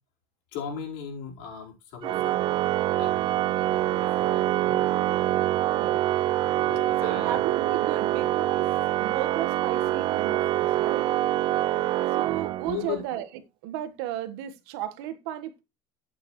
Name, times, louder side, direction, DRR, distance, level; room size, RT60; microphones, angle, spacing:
voice 1, 0.5-2.4 2.9-4.8 6.7-7.4 12.6-13.0, left 8 dB, 80° left, 4.6 m, -38 dB
Organ, 2.0-13.0, right 14 dB, 40° right, 0.5 m, -25 dB
voice 2, 5.6-6.1 7.0-11.1 12.1-13.3 13.6-15.6, right 12 dB, 85° right, 1.6 m, -34 dB
11.0 x 8.8 x 3.2 m
cardioid pair, 145°, 13 cm